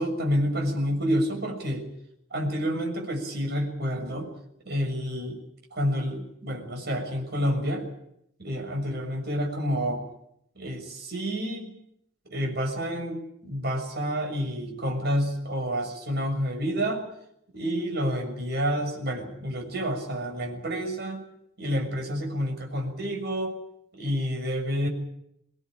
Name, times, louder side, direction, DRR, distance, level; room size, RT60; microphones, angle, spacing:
voice 1, 0.0-1.8 2.3-4.3 4.6-5.4 5.7-7.9 8.4-10.0 10.5-11.7 12.3-17.1 17.5-21.2 21.6-23.6 23.9-24.9, equal, 50° right, 4 dB, 6.6 m, -29 dB
25.0 x 19.0 x 9.1 m, 0.76 s
head